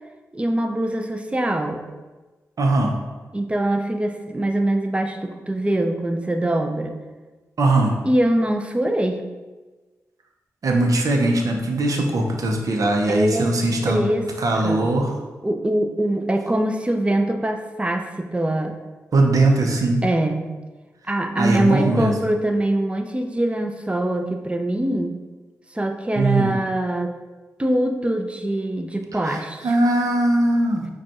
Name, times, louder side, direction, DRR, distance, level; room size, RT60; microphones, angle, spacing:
voice 1, 0.3-1.8 3.3-7.0 8.0-9.2 13.1-13.5 13.9-14.3 14.6-14.9 15.4-18.8 20.0-20.5 21.1-25.2 25.7-27.2 27.6-29.8, right 1 dB, 20° right, 5 dB, 0.6 m, -23 dB
voice 2, 2.6-2.9 7.6-8.0 10.6-14.0 14.4-15.1 19.1-20.0 21.4-22.1 26.2-26.5 29.2-30.9, right 2 dB, 65° right, 2 dB, 0.8 m, -20 dB
4.9 x 2.4 x 4.2 m, 1.2 s
supercardioid pair, 40°, 6 cm